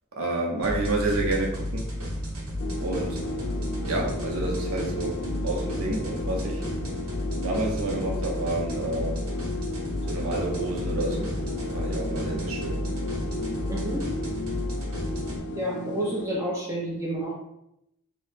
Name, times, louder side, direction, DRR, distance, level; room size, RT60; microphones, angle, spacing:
voice 1, 0.2-1.9 2.8-3.2 3.9-6.6 7.4-9.3 10.1-11.3 11.6-12.8, right 2 dB, 70° right, -1 dB, 0.7 m, -29 dB
sound 1, 0.6-15.4, equal, 85° right, 1.0 m, -32 dB
sound 2, 2.6-16.3, left 2 dB, 50° left, 0.3 m, -34 dB
voice 2, 13.7-14.1 15.5-17.3, right 1 dB, 15° right, -5 dB, 0.5 m, -30 dB
2.9 x 2.0 x 3.1 m, 0.81 s
head